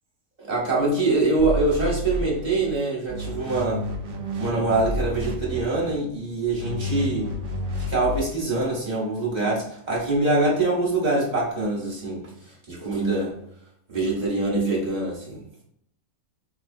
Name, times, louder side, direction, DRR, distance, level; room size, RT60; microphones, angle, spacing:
voice 1, 0.4-3.8 4.4-7.4 7.9-12.3 12.7-13.3 13.9-15.6, right 2 dB, 35° right, -4 dB, 1.0 m, -24 dB
sound 1, 1.4-2.8 3.1-6.0 6.5-8.2, equal, 90° right, 0.4 m, -30 dB
3.6 x 2.6 x 2.5 m, 0.70 s
omnidirectional pair, 1.6 m